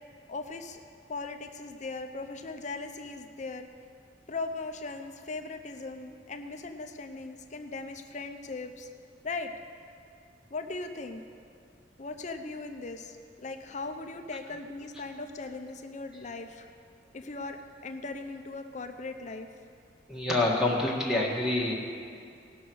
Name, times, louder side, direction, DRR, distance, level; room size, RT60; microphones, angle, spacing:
voice 1, 0.3-0.8 1.1-3.7 4.3-8.9 9.2-9.5 10.5-11.2 12.0-13.2 13.4-16.7 17.1-19.5, left 3 dB, 40° left, 6 dB, 0.6 m, -38 dB
voice 2, 20.1-21.7, left 2 dB, 5° right, -3 dB, 1.8 m, -26 dB
18.0 x 6.3 x 6.2 m, 2.5 s
head